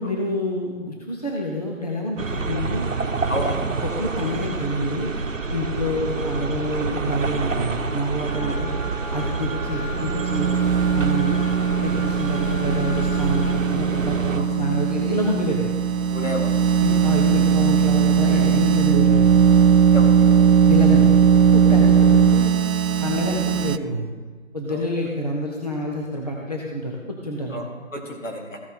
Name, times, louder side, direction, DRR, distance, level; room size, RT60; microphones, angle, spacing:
voice 1, 0.0-2.9 3.3-3.4 3.8-5.1 5.5-8.7 9.1-10.5 10.9-11.4 11.8-15.7 16.2-16.3 16.8-19.3 20.7-21.1 21.4-22.5 23.0-24.0 24.5-27.6, equal, 30° left, -2 dB, 0.9 m, -27 dB
sound 1, 2.2-14.4, right 4 dB, 70° right, 1.0 m, -28 dB
voice 2, 3.3-3.6 9.2-9.3 14.4-14.5 16.1-16.6 16.8-17.0 19.9-20.4 24.7-24.8 27.5-28.6, left 1 dB, 70° left, 0 dB, 2.6 m, -31 dB
Wind instrument woodwind instrument, 8.2-13.4, equal, 5° right, 2.2 m, -36 dB
sound 2, 9.9-23.8, right 7 dB, 85° right, 0.6 m, -18 dB
15.0 x 6.0 x 4.3 m, 1.5 s
figure-of-eight pair, 175°, 40 cm